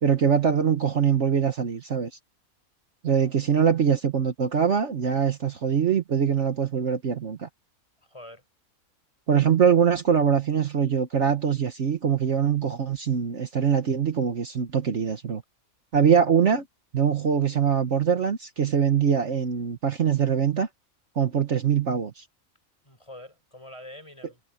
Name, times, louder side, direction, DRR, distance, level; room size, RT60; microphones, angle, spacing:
voice 1, 0.0-2.1 3.0-7.5 9.3-15.4 15.9-16.6 16.9-20.7 21.1-22.2, right 7 dB, 55° right, 1.4 m, -23 dB
voice 2, 3.1-3.6 8.0-8.4 22.8-24.4, left 1 dB, 20° left, 5.2 m, -46 dB
omnidirectional pair, 1.5 m